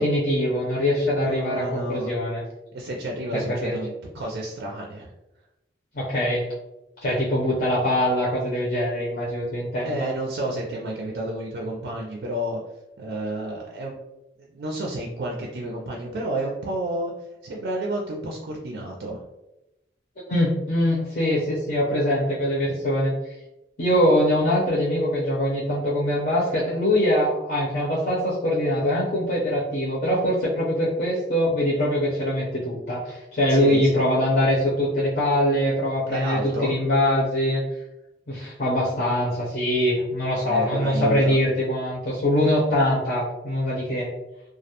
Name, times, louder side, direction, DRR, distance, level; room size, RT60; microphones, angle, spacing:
voice 1, 0.0-2.4 3.3-3.8 5.9-6.4 7.0-10.1 20.3-23.2 23.8-37.6 38.3-44.1, left 1 dB, 55° left, -8 dB, 0.6 m, -23 dB
voice 2, 1.2-2.1 2.7-5.1 9.8-12.6 13.0-13.9 14.5-17.1 17.4-19.2 33.5-34.0 36.1-36.7 40.4-41.4, right 1 dB, 70° right, -2 dB, 0.4 m, -30 dB
2.3 x 2.0 x 2.8 m, 0.94 s
head